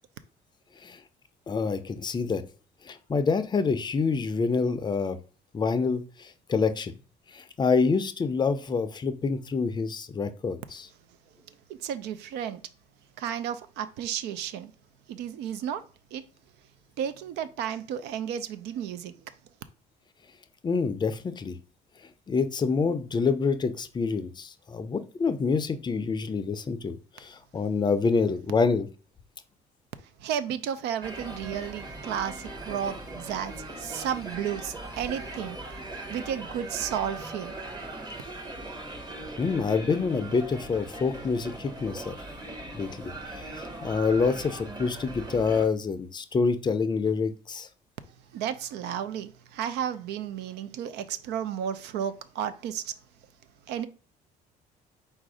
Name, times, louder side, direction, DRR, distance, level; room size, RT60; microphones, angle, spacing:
voice 1, 1.5-2.4 2.8-5.2 5.5-6.9 7.3-10.9 20.6-21.6 22.3-28.9 39.4-42.2 42.7-47.7, left 4 dB, 25° left, 0.4 m, -27 dB
voice 2, 11.7-12.6 13.2-14.7 15.1-15.8 16.1-16.2 17.0-19.1 30.2-35.6 36.1-37.5 48.3-52.9 53.7-53.9, right 9 dB, 85° right, 0.5 m, -33 dB
sound 1, 31.0-45.7, right 2 dB, 25° right, 0.9 m, -40 dB
4.1 x 2.5 x 4.8 m
cardioid pair, 110°, 17 cm